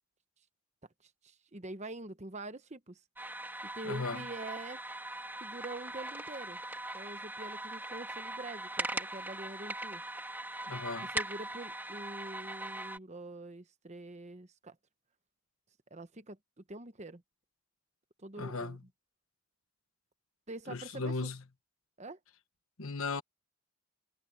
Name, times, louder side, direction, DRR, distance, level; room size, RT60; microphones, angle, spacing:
voice 1, 1.0-3.0 3.6-4.8 5.4-6.6 6.9-10.0 11.1-14.8 15.9-16.4 16.7-17.2 18.2-18.8 20.5-21.3 22.0-22.2, right 2 dB, 30° right, 1.1 m, -45 dB
sound 1, 3.2-13.0, right 2 dB, 10° right, 2.1 m, -40 dB
voice 2, 3.8-4.2 10.7-11.1 18.4-18.8 20.7-21.4 22.8-23.2, left 3 dB, 65° left, 1.2 m, -36 dB
head